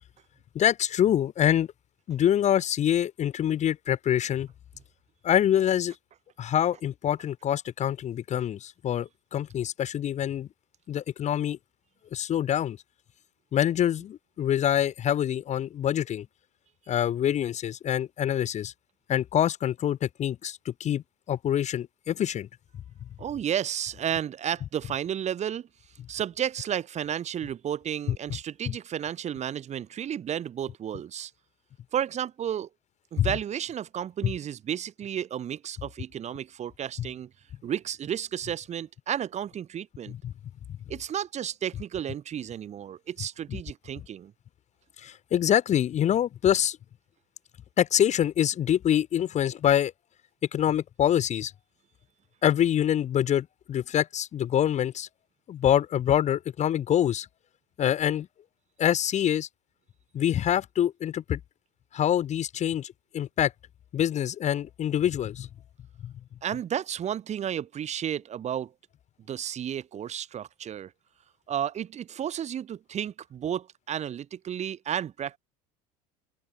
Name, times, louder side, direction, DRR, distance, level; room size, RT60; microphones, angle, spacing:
voice 1, 0.5-1.7 2.1-4.5 5.2-5.9 6.4-10.5 10.9-11.6 12.1-12.8 13.5-16.2 16.9-18.7 19.1-21.0 21.3-22.5 28.7-28.8 33.2-33.3 34.2-34.3 37.0-37.1 45.0-46.8 47.8-49.9 50.5-51.5 52.4-55.1 55.5-57.3 57.8-58.3 58.8-59.5 60.1-61.4 61.9-63.5 63.9-65.5 66.0-66.1, left 10 dB, 40° left, 1.6 m, -25 dB
voice 2, 23.2-25.7 26.1-31.3 31.9-32.7 33.1-37.3 37.6-40.1 40.9-44.3 66.4-68.7 69.3-70.9 71.5-75.4, right 9 dB, 40° right, 3.3 m, -32 dB
open air
supercardioid pair, 115°, 18 cm